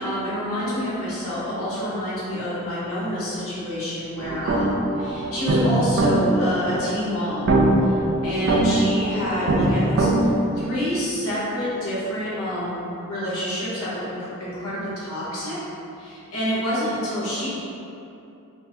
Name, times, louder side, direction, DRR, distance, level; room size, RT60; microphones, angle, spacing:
voice 1, 0.0-7.6 7.8-7.9 8.2-10.1 10.5-15.6 16.0-17.5, equal, 70° left, -10 dB, 1.2 m, -27 dB
sound 1, 4.2-10.2, right 2 dB, 55° right, 0.4 m, -22 dB
4.3 x 2.1 x 2.7 m, 2.8 s
head